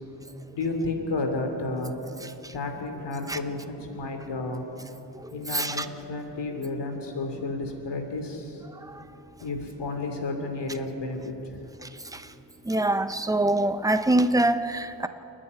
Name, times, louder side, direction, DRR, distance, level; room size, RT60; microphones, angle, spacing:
voice 1, 0.5-1.9 2.5-4.6 5.3-8.2 9.4-11.2, left 3 dB, 80° left, 4 dB, 3.1 m, -31 dB
voice 2, 2.2-2.5 3.3-3.4 5.1-5.9 8.9-9.0 11.8-12.2 12.6-15.1, right 1 dB, 10° right, 9 dB, 0.9 m, -25 dB
29.0 x 9.9 x 9.7 m, 2.9 s
wide cardioid pair, 115°, 42 cm